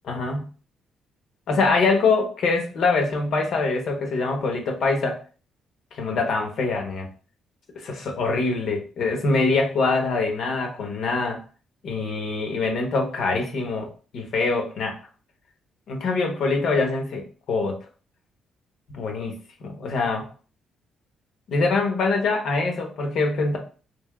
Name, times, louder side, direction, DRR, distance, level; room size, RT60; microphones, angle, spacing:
voice 1, 0.0-0.5 1.5-5.2 5.9-7.1 7.7-11.4 11.8-13.9 14.1-15.0 15.9-17.8 18.9-20.3 21.5-23.6, left 3 dB, 70° left, 2 dB, 1.1 m, -24 dB
3.4 x 3.0 x 3.5 m, 0.38 s
cardioid pair, 90°, 0 cm